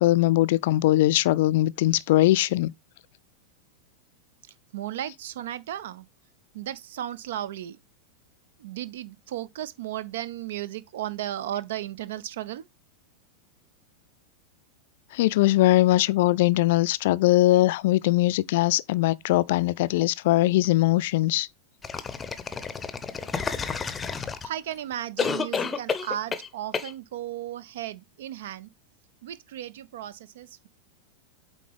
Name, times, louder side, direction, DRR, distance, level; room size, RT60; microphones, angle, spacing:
voice 1, 0.0-2.7 15.1-21.5, left 16 dB, 50° left, 0.3 m, -21 dB
voice 2, 4.7-6.1 6.5-7.8 8.6-12.7 24.1-28.7 29.2-30.7, right 12 dB, 55° right, 0.4 m, -35 dB
sound 1, 21.8-24.7 25.2-26.5 26.7-26.9, left 5 dB, 15° left, 0.7 m, -30 dB
8.3 x 3.8 x 3.4 m
figure-of-eight pair, 90°, 0 cm